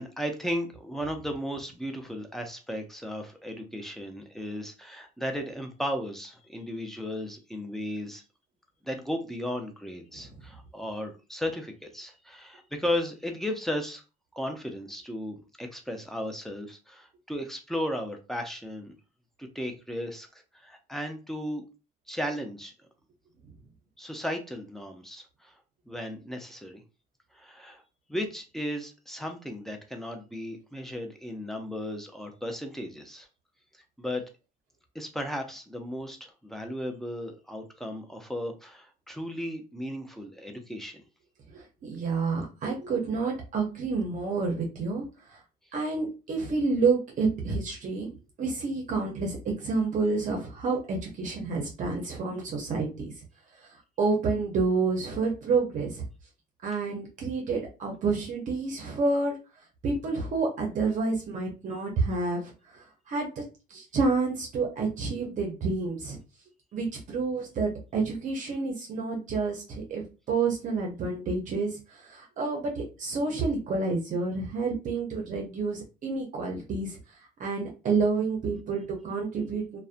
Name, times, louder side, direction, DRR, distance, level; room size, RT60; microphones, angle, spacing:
voice 1, 0.0-8.2 8.8-14.0 14.3-18.9 19.4-20.3 20.5-21.6 22.1-22.7 24.0-25.5 25.9-26.8 27.3-27.8 28.1-33.3 34.0-34.2 34.9-41.1, equal, ahead, 4 dB, 0.4 m, -35 dB
voice 2, 41.5-45.4 45.7-48.1 48.4-53.2 53.6-56.1 56.6-59.4 59.8-63.4 63.7-66.2 66.7-79.8, right 4 dB, 50° right, 1 dB, 0.6 m, -29 dB
2.4 x 2.1 x 2.4 m, 0.31 s
cardioid pair, 110°, 17 cm